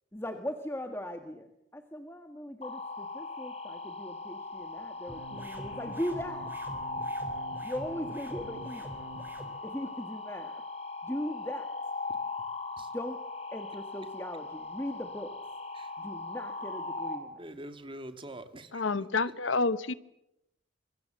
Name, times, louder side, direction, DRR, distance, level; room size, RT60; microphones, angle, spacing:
voice 1, 0.1-1.5 1.7-6.4 7.6-8.9 9.6-10.6 11.0-11.7 12.9-13.2 13.5-15.3 16.0-17.4, equal, 15° left, 6 dB, 1.6 m, -38 dB
sound 1, 2.6-17.2, left 3 dB, 35° left, 4.4 m, -39 dB
sound 2, 5.1-9.5, right 1 dB, 10° right, 3.9 m, -45 dB
voice 2, 17.4-19.3, right 1 dB, 25° right, 8 dB, 2.1 m, -45 dB
voice 3, 18.7-19.9, left 3 dB, 85° left, 15 dB, 1.0 m, -28 dB
26.0 x 24.0 x 7.6 m, 0.85 s
head